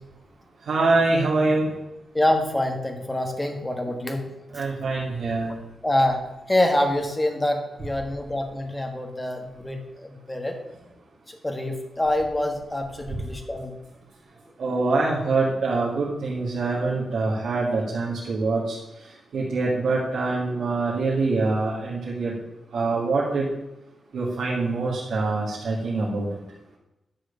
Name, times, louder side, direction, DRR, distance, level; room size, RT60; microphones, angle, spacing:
voice 1, 0.7-1.7 4.5-5.5 14.6-18.8 19.3-22.3 22.7-23.4 24.1-26.3, right 3 dB, 70° right, -7 dB, 2.5 m, -24 dB
voice 2, 2.1-4.3 4.5-4.6 5.8-10.6 11.3-13.8, left 1 dB, 10° left, 4 dB, 1.5 m, -26 dB
11.5 x 4.9 x 8.4 m, 0.96 s
wide cardioid pair, 150°, 0 cm